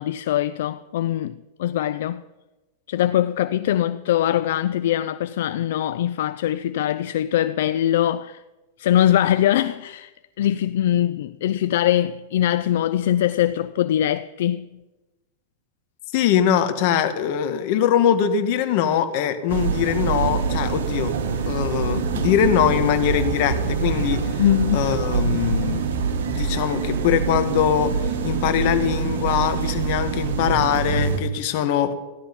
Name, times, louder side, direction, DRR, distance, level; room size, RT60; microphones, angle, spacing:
voice 1, 0.0-2.2 2.9-8.4 8.8-10.1 10.4-14.7 24.4-24.9, left 11 dB, 70° left, 0.5 m, -22 dB
voice 2, 16.1-21.1 21.5-24.4 24.7-25.8 26.3-27.9 28.2-31.9, left 9 dB, 50° left, 1.6 m, -22 dB
sound 1, 19.5-31.2, right 5 dB, 75° right, 1.8 m, -25 dB
15.5 x 11.5 x 5.3 m
supercardioid pair, 150°, 0 cm